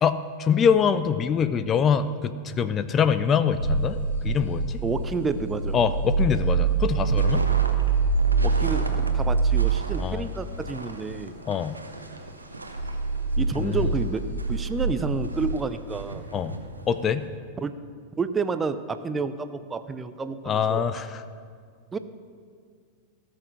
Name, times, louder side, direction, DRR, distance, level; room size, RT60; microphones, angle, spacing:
voice 1, 0.0-4.8 5.7-7.4 10.0-10.2 11.5-11.8 13.6-13.9 16.3-16.6 16.9-17.3 20.5-21.2, left 7 dB, 25° left, 13 dB, 0.5 m, -24 dB
sound 1, 3.6-10.2 10.6-11.1 11.7-11.8 12.1-15.5, right 4 dB, 65° left, 4.0 m, -25 dB
voice 2, 4.8-5.8 8.4-11.3 13.4-16.2 17.6-17.8 18.1-20.8 21.9-22.0, right 4 dB, 15° right, 12 dB, 0.6 m, -30 dB
sound 2, 6.9-17.3, right 2 dB, 80° right, 1.1 m, -39 dB
17.5 x 6.2 x 6.5 m, 2.1 s
figure-of-eight pair, 90°, 0 cm